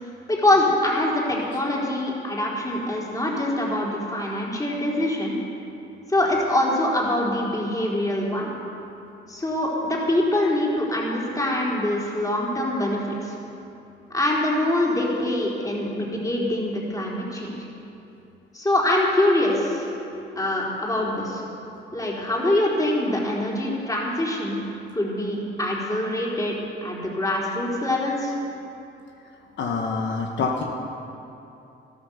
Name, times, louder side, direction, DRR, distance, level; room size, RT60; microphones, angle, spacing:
voice 1, 0.3-5.4 6.1-8.5 9.3-13.4 14.1-17.6 18.5-19.9 20.4-21.4 21.9-24.6 24.9-26.5 26.8-28.3, left 1 dB, 15° left, -4 dB, 4.0 m, -24 dB
voice 2, 29.6-30.6, left 4 dB, 70° left, 1 dB, 1.2 m, -26 dB
13.0 x 12.5 x 7.0 m, 2.8 s
cardioid pair, 90°, 20 cm